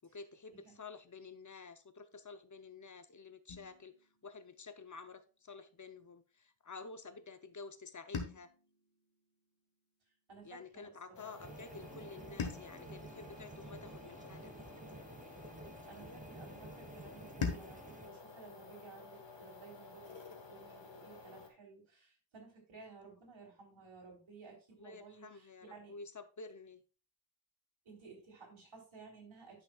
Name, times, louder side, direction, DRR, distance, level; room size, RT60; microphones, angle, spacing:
voice 1, 0.0-8.5 10.4-14.5 24.8-26.8, left 4 dB, 40° left, 10 dB, 0.7 m, -51 dB
sound 1, 3.5-5.7 8.1-10.5 12.4-14.9 17.4-19.9, left 5 dB, 85° left, 1.3 m, -46 dB
voice 2, 10.3-11.4 15.9-25.9 27.8-29.6, right 4 dB, 80° right, 0 dB, 3.4 m, -56 dB
sound 2, 11.1-21.5, left 4 dB, 65° left, 1.5 m, -53 dB
sound 3, 11.4-18.1, right 3 dB, 15° right, 0.6 m, -52 dB
10.5 x 5.9 x 2.3 m, 0.34 s
wide cardioid pair, 95°, 47 cm